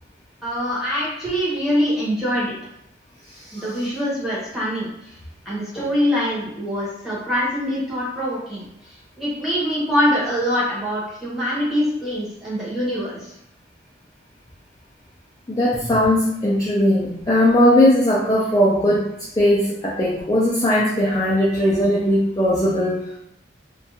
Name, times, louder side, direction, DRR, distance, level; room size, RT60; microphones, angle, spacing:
voice 1, 0.4-2.5 3.5-4.9 5.4-8.6 9.2-13.3, equal, ahead, -9 dB, 0.9 m, -23 dB
voice 2, 15.5-19.0 19.4-23.0, left 1 dB, 20° left, -7 dB, 0.3 m, -18 dB
2.4 x 2.2 x 2.7 m, 0.78 s
head